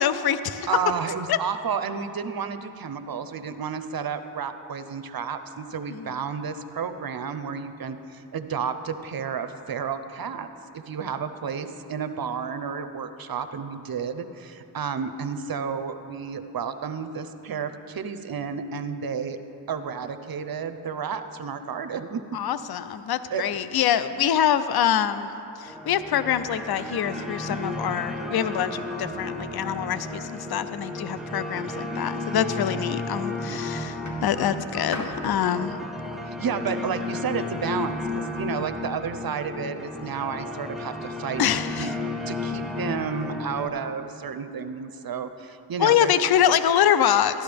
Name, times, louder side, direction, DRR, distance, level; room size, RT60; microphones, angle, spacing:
voice 1, 0.0-0.7 1.3-1.4 5.9-6.1 22.3-25.3 25.6-35.7 41.4-41.9 45.8-47.4, left 9 dB, 60° left, 13 dB, 0.5 m, -25 dB
voice 2, 0.7-10.5 10.7-19.4 19.7-22.2 23.3-23.6 33.4-33.8 36.2-41.9 42.3-46.1, right 6 dB, 55° right, 10 dB, 0.6 m, -31 dB
sound 1, 25.7-43.7, left 2 dB, ahead, 0.8 m, -33 dB
sound 2, 33.0-33.4 34.0-37.3 38.1-38.2, left 2 dB, 40° left, 1.4 m, -40 dB
12.5 x 11.5 x 3.4 m, 2.8 s
cardioid pair, 55°, 43 cm